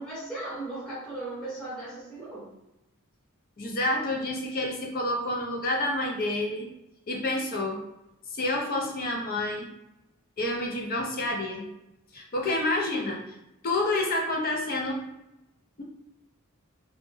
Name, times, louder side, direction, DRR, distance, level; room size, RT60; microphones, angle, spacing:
voice 1, 0.0-2.5, right 2 dB, 5° left, -10 dB, 0.9 m, -37 dB
voice 2, 3.6-6.7 7.1-7.8 8.3-9.7 10.4-11.7 12.1-13.2 13.6-15.0 15.8-15.9, left 2 dB, 40° left, 0 dB, 0.4 m, -28 dB
2.2 x 2.0 x 3.0 m, 0.91 s
head